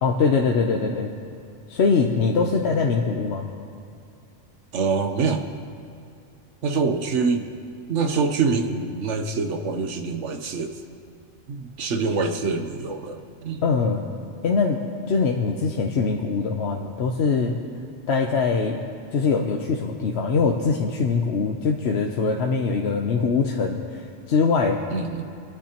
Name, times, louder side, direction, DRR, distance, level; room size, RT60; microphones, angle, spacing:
voice 1, 0.0-1.1 1.7-3.5 13.6-14.0 14.4-14.8 15.1-17.6 18.1-18.8 19.1-24.8, left 4 dB, 65° left, 1 dB, 1.0 m, -22 dB
voice 2, 4.7-5.5 6.6-7.5 7.9-10.7 11.5-13.6 24.9-25.3, right 4 dB, 75° right, 6 dB, 1.2 m, -25 dB
26.5 x 10.0 x 2.9 m, 2.5 s
omnidirectional pair, 1.3 m